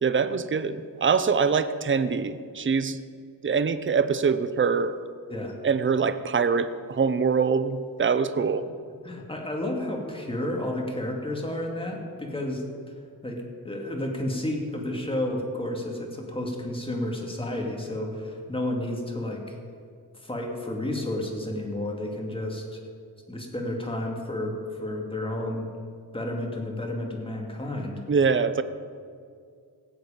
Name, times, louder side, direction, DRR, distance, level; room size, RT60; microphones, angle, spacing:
voice 1, 0.0-3.0 3.4-4.9 5.6-8.6 28.1-28.6, right 5 dB, 35° right, 12 dB, 0.7 m, -24 dB
voice 2, 9.0-12.9 13.2-19.6 20.2-22.8 23.3-25.7 26.1-28.0, left 1 dB, 15° left, 0 dB, 2.5 m, -31 dB
18.0 x 8.1 x 5.2 m, 2.2 s
cardioid pair, 70°, 36 cm